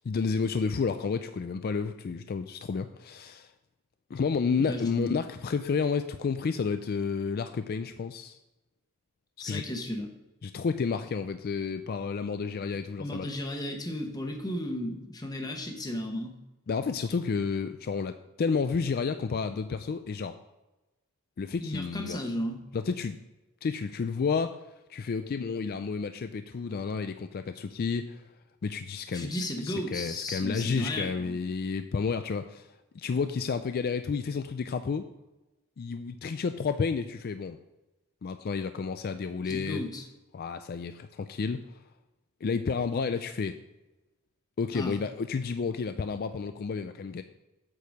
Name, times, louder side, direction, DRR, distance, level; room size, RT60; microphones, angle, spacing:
voice 1, 0.0-3.5 4.1-8.4 9.4-9.6 10.4-13.3 16.7-20.4 21.4-22.2 22.7-23.2 23.6-24.6 24.9-28.2 28.6-32.7 32.9-35.0 35.8-37.6 38.2-39.8 40.3-41.8 42.4-43.6 44.6-47.2, left 5 dB, 45° left, 9 dB, 0.3 m, -31 dB
voice 2, 4.6-5.2 9.4-10.1 13.0-16.4 21.6-22.6 29.1-31.4 39.4-40.0 44.7-45.0, left 1 dB, 15° left, 3 dB, 1.0 m, -34 dB
8.3 x 4.7 x 6.4 m, 1.0 s
head